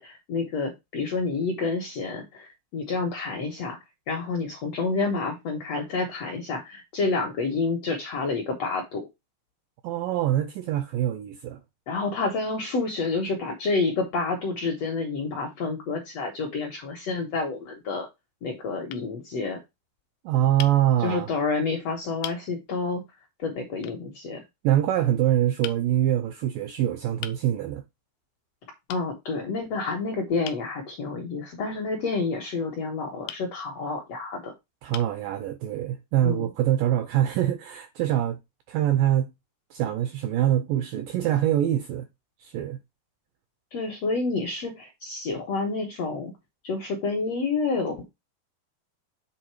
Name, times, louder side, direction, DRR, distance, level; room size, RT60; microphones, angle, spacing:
voice 1, 0.0-3.8 4.1-9.1 11.9-18.1 18.4-19.6 21.0-23.0 23.4-24.4 28.9-34.5 36.2-36.5 43.7-46.3 46.6-48.1, left 4 dB, 70° left, 1.6 m, -29 dB
voice 2, 9.8-11.6 20.3-21.3 24.6-27.8 34.8-38.4 38.7-39.3 39.7-42.1 42.4-42.8, right 12 dB, 85° right, 1.9 m, -24 dB
sound 1, 17.4-17.7 18.5-18.6 18.9-19.1 20.6-20.8 21.6-21.7 22.2-22.4 23.8-24.0 25.6-25.8 27.2-27.4 28.9-29.1 30.4-30.7 33.3-33.5 34.3-34.4 34.9-35.2, left 13 dB, 85° left, 2.1 m, -38 dB
7.7 x 3.6 x 4.7 m
omnidirectional pair, 4.6 m